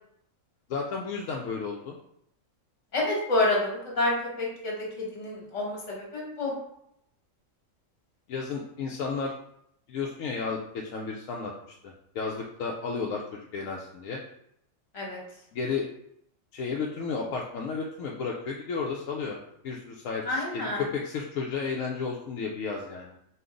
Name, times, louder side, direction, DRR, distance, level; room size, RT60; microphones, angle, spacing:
voice 1, 0.7-2.0 8.3-9.3 9.9-11.5 11.8-14.2 15.5-15.8 16.5-19.4 19.6-23.1, left 5 dB, 85° left, -1 dB, 1.0 m, -33 dB
voice 2, 2.9-6.5 14.9-15.2 20.2-20.8, left 2 dB, 65° left, -2 dB, 1.7 m, -28 dB
5.3 x 2.5 x 3.8 m, 0.75 s
omnidirectional pair, 1.3 m